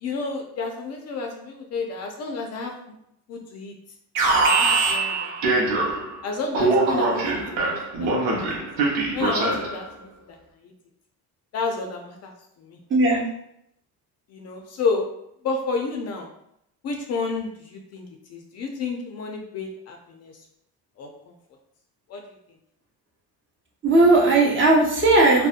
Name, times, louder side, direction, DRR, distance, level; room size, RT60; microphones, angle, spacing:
voice 1, 0.0-2.7 3.3-3.7 4.5-5.6 6.2-8.4 9.1-10.7 11.5-12.3 12.6-12.8 14.3-15.0 15.4-16.3 16.8-20.3 21.0-21.3 22.1-22.4, left 4 dB, 45° left, 2 dB, 0.4 m, -31 dB
Alarm, 4.1-6.2 6.5-9.8, right 3 dB, 85° right, 0.8 m, -22 dB
voice 2, 12.9-13.3 23.8-25.5, right 2 dB, 35° right, -1 dB, 0.6 m, -17 dB
2.7 x 2.1 x 2.4 m, 0.75 s
cardioid pair, 135°, 37 cm